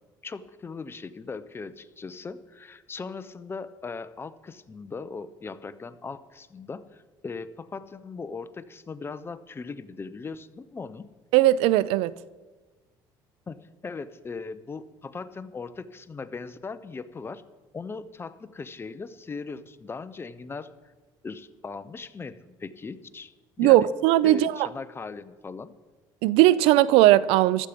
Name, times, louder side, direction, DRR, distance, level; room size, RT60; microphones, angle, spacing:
voice 1, 0.2-11.1 13.5-17.4 17.7-20.7 21.2-23.9 24.2-25.7, left 4 dB, 25° left, 0.8 m, -39 dB
voice 2, 11.3-12.1 23.6-24.5 26.2-27.7, right 15 dB, 85° right, 0.4 m, -18 dB
15.0 x 11.5 x 5.2 m
cardioid pair, 105°, 10 cm